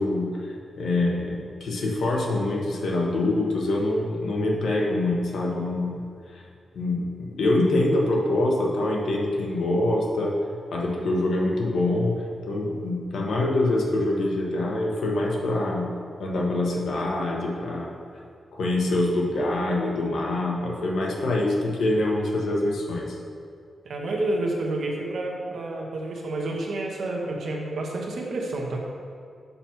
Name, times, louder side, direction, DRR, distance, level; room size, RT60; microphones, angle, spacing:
voice 1, 0.0-6.0 6.3-6.4 6.7-10.3 10.7-15.9 16.2-17.9 18.5-23.2, left 2 dB, 70° left, -2 dB, 1.0 m, -25 dB
voice 2, 23.8-28.8, right 2 dB, 60° right, -1 dB, 0.9 m, -29 dB
6.9 x 2.9 x 5.7 m, 2.3 s
wide cardioid pair, 175°, 0 cm